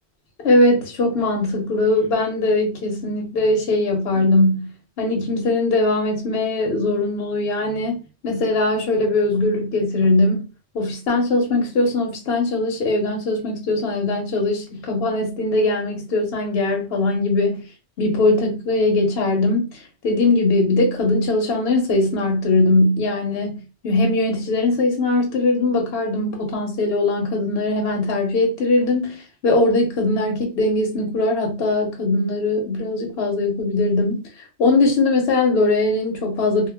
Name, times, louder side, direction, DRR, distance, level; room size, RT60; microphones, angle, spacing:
voice 1, 0.4-4.7 5.0-8.0 8.2-10.4 10.7-17.6 18.0-23.6 23.8-34.2 34.6-36.7, left 2 dB, 65° left, 0.8 m, -20 dB
2.1 x 2.1 x 3.2 m
omnidirectional pair, 1.2 m